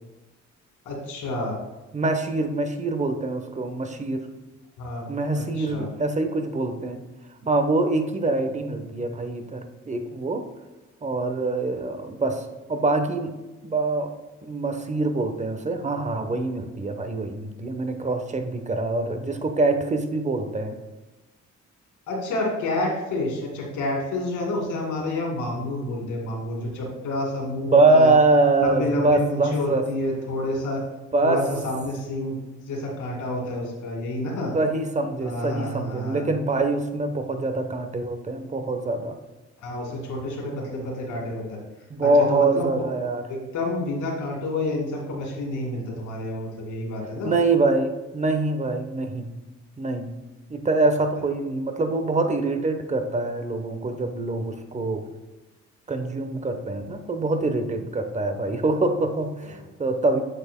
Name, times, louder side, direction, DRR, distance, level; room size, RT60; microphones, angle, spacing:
voice 1, 0.8-1.6 4.8-5.0 5.3-5.9 22.1-28.1 28.6-30.8 31.2-32.4 32.7-34.5 35.2-36.3 39.6-41.6 42.0-42.7 43.3-47.3 59.5-59.6, left 1 dB, 80° left, -1 dB, 2.4 m, -29 dB
voice 2, 1.9-4.3 5.1-7.0 7.4-10.4 11.0-13.3 13.6-14.1 14.4-20.8 27.6-29.9 31.1-31.4 34.5-39.2 41.9-43.2 47.2-49.3 49.8-50.1 50.5-55.0 55.9-60.2, right 2 dB, 25° right, 7 dB, 0.9 m, -24 dB
8.2 x 7.7 x 2.2 m, 1.1 s
cardioid pair, 90°, 30 cm